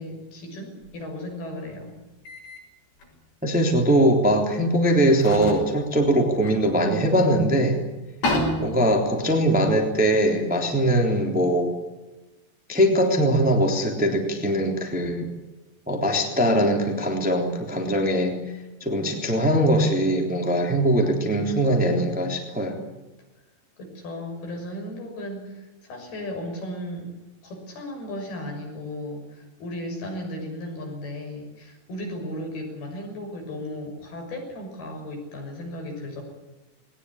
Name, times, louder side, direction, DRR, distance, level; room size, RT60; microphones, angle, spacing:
voice 1, 0.0-1.9 23.8-27.1 27.4-36.2, left 1 dB, 65° left, 2 dB, 8.4 m, -35 dB
sound 1, 0.8-1.0 2.2-2.6 3.0-3.1 4.4-4.5 5.1-7.3 7.6-7.7 8.0-10.4, left 1 dB, 80° left, 9.2 m, -31 dB
voice 2, 3.4-7.8 8.6-11.7 12.7-15.3 15.9-18.5 18.8-22.8, right 1 dB, ahead, 2 dB, 2.6 m, -21 dB
21.0 x 19.5 x 10.0 m, 1.1 s
omnidirectional pair, 4.9 m